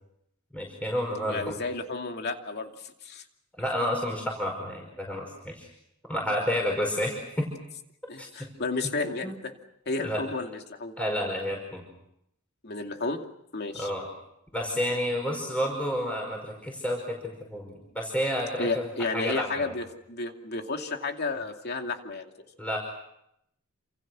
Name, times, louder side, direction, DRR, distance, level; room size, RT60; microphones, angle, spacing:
voice 1, 0.5-1.6 3.6-5.7 6.1-7.5 8.2-8.5 9.2-9.4 10.0-10.2 11.0-11.8 13.7-14.1 14.5-18.9 19.1-19.8 22.6-22.8, equal, 5° left, 0 dB, 5.2 m, -30 dB
voice 2, 1.3-3.2 8.1-9.5 9.9-10.9 12.6-13.2 13.5-13.9 18.6-22.3, left 3 dB, 50° left, 4 dB, 2.6 m, -32 dB
29.0 x 28.0 x 6.3 m, 0.79 s
head